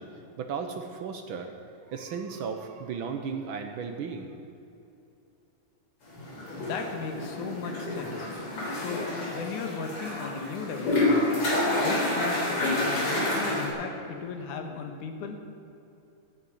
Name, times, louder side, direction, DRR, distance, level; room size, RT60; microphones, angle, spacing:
voice 1, 0.0-1.5 1.8-4.4, right 6 dB, 80° right, 5 dB, 1.1 m, -35 dB
sound 1, 6.2-13.7, left 1 dB, 50° left, 4.2 m, -29 dB
voice 2, 6.5-8.4 8.7-11.3 11.8-15.4, left 4 dB, 80° left, 5 dB, 2.9 m, -36 dB
11.5 x 9.5 x 9.4 m, 2.8 s
omnidirectional pair, 3.5 m